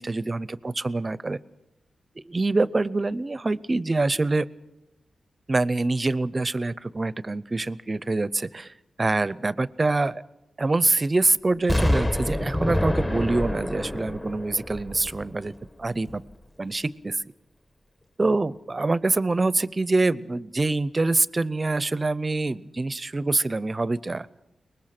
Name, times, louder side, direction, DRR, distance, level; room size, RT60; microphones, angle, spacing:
voice 1, 0.0-1.4 2.2-4.5 5.5-8.7 9.0-10.2 10.6-15.5 15.8-16.2 16.6-17.2 18.2-24.3, right 2 dB, 35° right, 18 dB, 0.6 m, -25 dB
Explosion, 11.7-15.6 16.1-16.2, left 1 dB, 25° left, 1.6 m, -27 dB
23.5 x 20.0 x 6.0 m, 0.96 s
cardioid pair, 65°, 0 cm